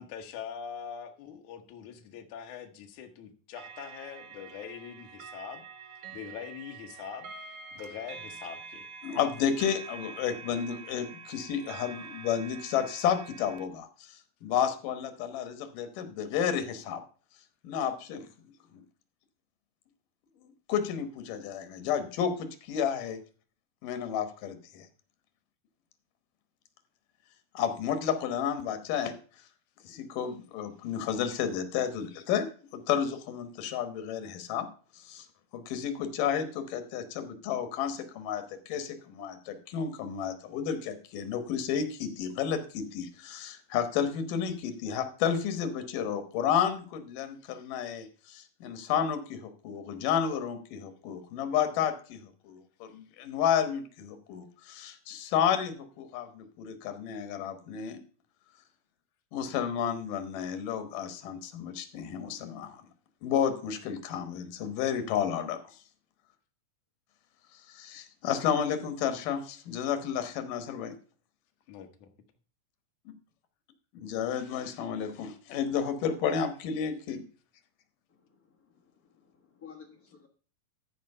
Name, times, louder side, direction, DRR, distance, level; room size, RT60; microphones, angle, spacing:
voice 1, 0.0-5.7 6.1-8.9 71.7-72.1, left 8 dB, 70° left, 2.5 m, -43 dB
sound 1, 3.5-13.6, right 5 dB, 65° right, 1.4 m, -46 dB
voice 2, 9.0-17.0 17.6-18.3 20.4-23.2 23.8-24.9 27.5-29.1 29.8-34.7 35.0-35.3 35.5-58.0 59.3-62.8 63.2-65.8 67.7-70.9 74.0-77.2, left 8 dB, 90° left, 2.8 m, -31 dB
voice 3, 78.1-80.3, left 7 dB, 40° left, 1.4 m, -54 dB
13.5 x 4.8 x 5.4 m
omnidirectional pair, 3.7 m